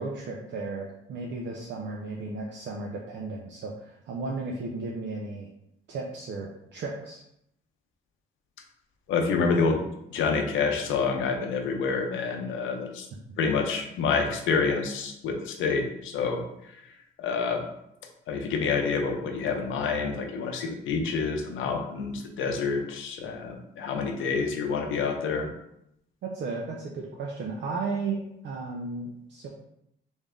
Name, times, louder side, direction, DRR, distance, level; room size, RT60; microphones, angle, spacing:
voice 1, 0.0-5.5 5.9-7.2 26.2-29.5, right 3 dB, 65° right, -1 dB, 0.6 m, -34 dB
voice 2, 9.1-13.1 13.4-16.4 17.2-17.7 18.3-25.5, left 5 dB, 85° left, 3 dB, 0.7 m, -28 dB
3.3 x 2.7 x 3.6 m, 0.78 s
cardioid pair, 90°, 20 cm